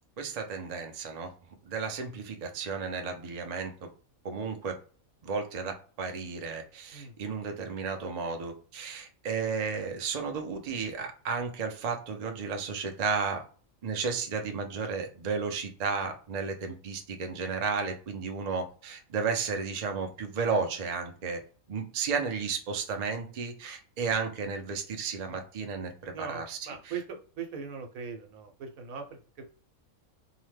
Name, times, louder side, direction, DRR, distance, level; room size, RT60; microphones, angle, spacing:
voice 1, 0.2-1.3 1.6-3.9 4.2-4.8 5.2-13.4 13.8-21.4 21.7-27.0, right 5 dB, 60° right, 4 dB, 0.4 m, -33 dB
voice 2, 26.1-29.4, right 6 dB, 80° right, 5 dB, 1.1 m, -40 dB
2.8 x 2.1 x 3.2 m, 0.40 s
omnidirectional pair, 1.5 m